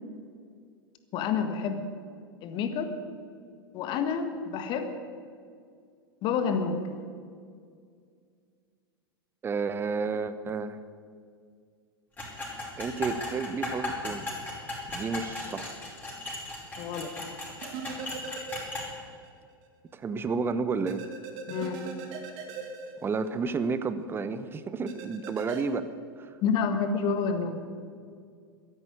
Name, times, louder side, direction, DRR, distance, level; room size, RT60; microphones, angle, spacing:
voice 1, 1.1-1.9 2.4-2.9 3.7-4.9 6.2-6.8 15.5-15.6 16.8-17.1 21.5-21.8 26.4-27.6, left 6 dB, 40° left, 8 dB, 1.7 m, -29 dB
voice 2, 9.4-10.8 12.8-14.3 14.9-15.7 17.5-17.6 19.9-21.1 23.0-26.3, right 4 dB, 20° right, 13 dB, 0.9 m, -31 dB
sound 1, 12.2-18.9, left 2 dB, 15° left, 5.2 m, -36 dB
sound 2, 17.6-19.3 19.6-19.7 20.9-23.7 24.9-25.6, right 4 dB, 45° right, 2.1 m, -40 dB
13.0 x 11.0 x 9.5 m, 2.2 s
figure-of-eight pair, 90°, 12 cm